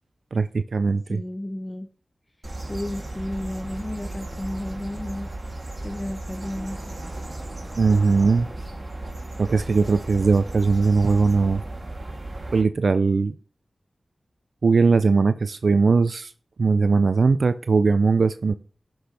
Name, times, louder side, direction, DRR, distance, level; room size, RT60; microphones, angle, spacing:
voice 1, 0.3-1.2 7.8-8.5 9.4-11.6 12.5-13.3 14.6-16.3 16.6-18.5, right 4 dB, 75° right, 0.4 m, -20 dB
voice 2, 1.1-1.9 2.7-5.4 5.8-7.0, left 1 dB, 25° left, 0.8 m, -33 dB
sound 1, 2.4-12.6, right 2 dB, 45° right, 2.7 m, -35 dB
sound 2, 3.6-5.1 6.4-9.0 9.5-10.6, right 1 dB, 25° right, 4.2 m, -47 dB
15.5 x 6.0 x 3.3 m
cardioid pair, 50°, 0 cm